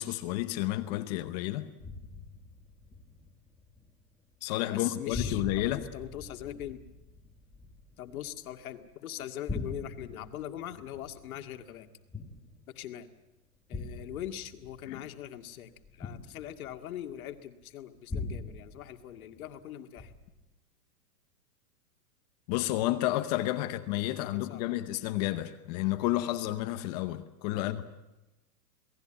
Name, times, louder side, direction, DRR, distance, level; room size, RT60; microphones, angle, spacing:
voice 1, 0.0-1.7 4.4-5.8 14.9-15.0 22.5-27.8, left 15 dB, 25° left, 0.8 m, -31 dB
sound 1, 1.8-4.1 4.3-4.8 5.1-8.8 9.2-12.9 13.7-17.3 18.1-19.6 20.0-20.5, left 3 dB, 5° left, 1.4 m, -42 dB
voice 2, 4.7-6.8 8.0-11.9 12.7-13.1 13.7-20.1 23.6-24.6 27.5-27.8, left 11 dB, 60° left, 2.1 m, -42 dB
28.0 x 19.0 x 8.9 m
hypercardioid pair, 160°, 48 cm